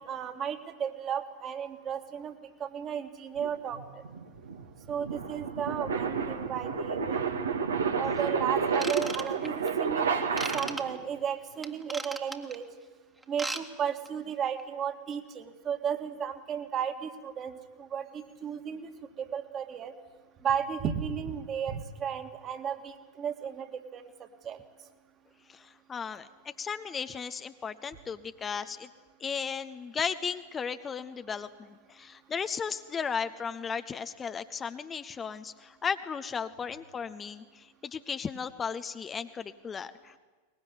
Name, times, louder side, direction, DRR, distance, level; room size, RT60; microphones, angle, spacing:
voice 1, 0.1-2.3 2.6-3.8 4.9-7.4 8.0-12.6 13.3-18.9 19.2-19.9 20.4-24.1 24.4-24.6, right 8 dB, 30° right, 7 dB, 2.1 m, -34 dB
sound 1, 3.4-11.0, right 5 dB, 70° right, 2.0 m, -31 dB
Ratchet pawl / Tools, 8.7-9.7 10.4-10.8 11.6-12.5 13.2-13.6 13.9-14.1 14.6-14.7, right 2 dB, 10° right, 1.8 m, -36 dB
voice 2, 25.5-26.3 26.6-28.9 29.2-40.1, left 6 dB, 20° left, 10 dB, 0.8 m, -35 dB
22.5 x 20.5 x 9.9 m, 1.3 s
figure-of-eight pair, 90°, 0 cm